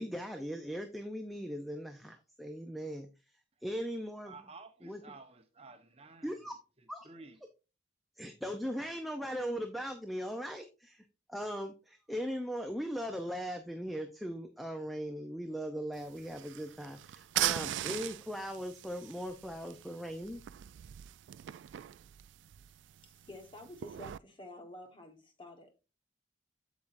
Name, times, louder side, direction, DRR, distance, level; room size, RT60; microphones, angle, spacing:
voice 1, 0.0-3.1 3.6-4.3 4.8-5.0 6.2-6.5 6.9-7.1 8.2-11.0 11.3-20.4, equal, ahead, 0.6 m, -39 dB
voice 2, 4.2-6.4 6.8-7.4, right 3 dB, 35° right, 0.9 m, -53 dB
sound 1, 15.9-24.2, right 13 dB, 80° right, 0.3 m, -40 dB
voice 3, 23.0-25.7, left 1 dB, 25° left, 1.3 m, -50 dB
8.4 x 7.2 x 2.6 m
head